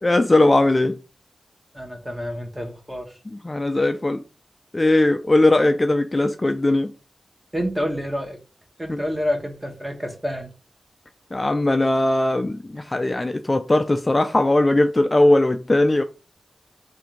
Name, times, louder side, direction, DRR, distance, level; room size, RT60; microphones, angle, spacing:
voice 1, 0.0-1.0 3.3-4.2 4.7-6.9 8.9-9.0 11.3-16.0, left 2 dB, 25° left, 0.3 m, -19 dB
voice 2, 1.7-3.1 7.5-8.4 8.8-10.5, equal, 10° right, 1.2 m, -28 dB
3.5 x 2.6 x 4.4 m
cardioid pair, 70°, 0 cm